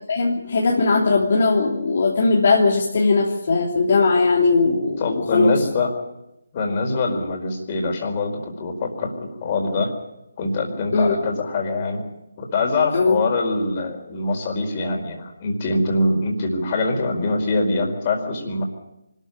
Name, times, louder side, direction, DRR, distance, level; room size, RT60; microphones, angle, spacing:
voice 1, 0.1-5.0 5.3-5.6 10.9-11.2 12.9-13.2, left 4 dB, 50° left, -2 dB, 3.1 m, -19 dB
voice 2, 5.0-5.9 6.5-9.9 10.4-12.0 12.4-18.6, left 2 dB, 30° left, 2 dB, 4.7 m, -24 dB
25.0 x 14.0 x 9.0 m, 0.89 s
figure-of-eight pair, 150°, 0 cm